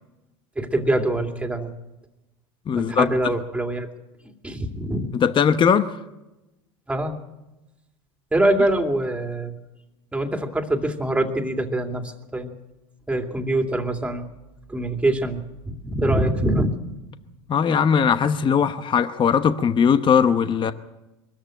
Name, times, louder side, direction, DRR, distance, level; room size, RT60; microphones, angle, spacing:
voice 1, 0.6-1.7 2.8-3.9 4.4-5.2 6.9-7.1 8.3-9.5 10.1-12.5 13.1-14.3 14.7-16.8, right 1 dB, 5° right, 2.5 m, -24 dB
voice 2, 2.7-3.1 5.1-5.9 17.5-20.7, left 7 dB, 30° left, 1.0 m, -19 dB
22.5 x 14.0 x 8.9 m
supercardioid pair, 100°, 16 cm